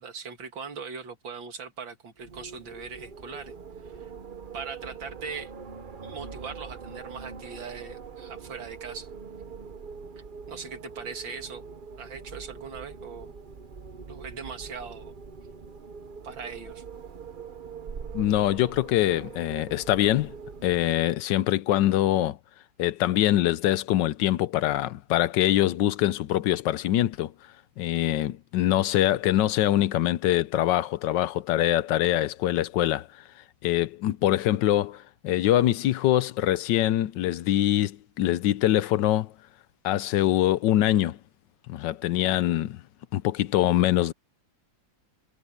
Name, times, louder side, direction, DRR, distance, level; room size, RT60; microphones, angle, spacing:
voice 1, 0.0-3.6 3.8-4.1 4.5-5.5 6.0-9.1 10.5-11.7 12.0-13.3 14.1-15.1 16.2-16.8, right 5 dB, 75° right, 2.8 m, -40 dB
Wind, 2.2-21.2, right 5 dB, 45° right, 0.6 m, -43 dB
voice 2, 18.1-20.3 20.6-22.4 22.8-27.3 27.8-33.1 33.6-39.3 39.8-41.2 41.7-42.8 43.1-44.1, left 13 dB, 70° left, 1.3 m, -24 dB
omnidirectional pair, 2.1 m